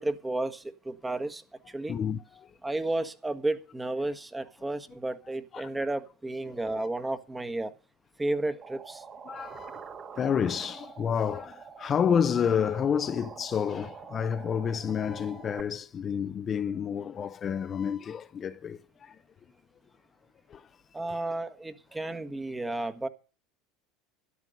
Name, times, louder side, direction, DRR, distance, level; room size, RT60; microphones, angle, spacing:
voice 1, 0.0-2.0 2.6-7.7 8.2-9.0 20.9-23.1, right 2 dB, 15° right, 1.5 m, -32 dB
voice 2, 1.9-2.2 5.5-5.7 6.5-6.6 9.3-9.8 10.1-19.2 20.5-20.7, left 7 dB, 35° left, 0.9 m, -29 dB
sound 1, 8.6-15.6, right 6 dB, 40° right, 2.0 m, -46 dB
13.0 x 11.5 x 5.3 m
hypercardioid pair, 85°, 0 cm